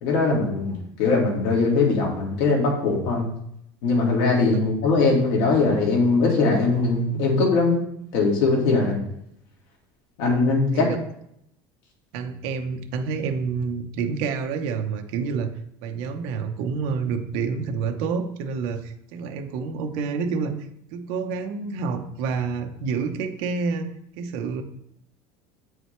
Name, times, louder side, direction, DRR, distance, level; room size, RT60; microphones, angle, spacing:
voice 1, 0.0-3.2 3.8-7.8 8.1-9.0 10.2-10.9, left 3 dB, 80° left, -1 dB, 2.1 m, -21 dB
voice 2, 12.1-15.5 15.8-20.5 20.9-23.9 24.2-24.6, right 5 dB, 65° right, 5 dB, 0.8 m, -28 dB
8.1 x 4.8 x 3.2 m, 0.73 s
cardioid pair, 170°, 10 cm